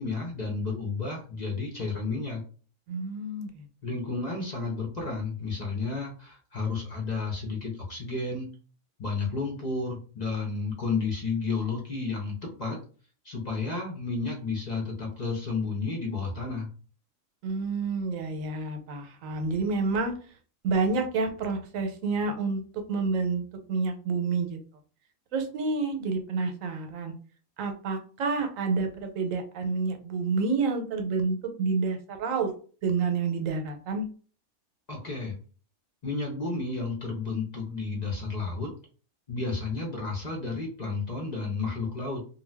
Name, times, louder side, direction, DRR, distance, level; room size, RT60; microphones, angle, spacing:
voice 1, 0.0-2.4 3.8-8.5 9.0-12.8 13.2-16.7 34.9-35.4 36.0-38.7 39.3-42.2, left 4 dB, 40° left, -1 dB, 0.7 m, -32 dB
voice 2, 2.9-3.7 17.4-20.1 20.6-23.4 23.7-24.6 25.3-27.1 27.6-32.5 32.8-34.0, right 4 dB, 90° right, 6 dB, 1.0 m, -29 dB
2.6 x 2.1 x 3.3 m, 0.40 s
omnidirectional pair, 1.3 m